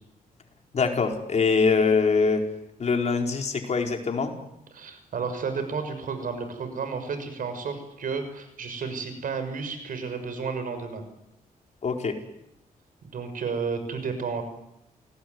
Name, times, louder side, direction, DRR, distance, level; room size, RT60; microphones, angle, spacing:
voice 1, 0.7-2.4 2.8-4.3 11.8-12.1, left 4 dB, 50° left, 3 dB, 4.7 m, -23 dB
voice 2, 4.7-11.0 13.0-14.4, right 5 dB, 70° right, 9 dB, 6.4 m, -32 dB
30.0 x 19.0 x 9.7 m, 0.83 s
cardioid pair, 105°, 15 cm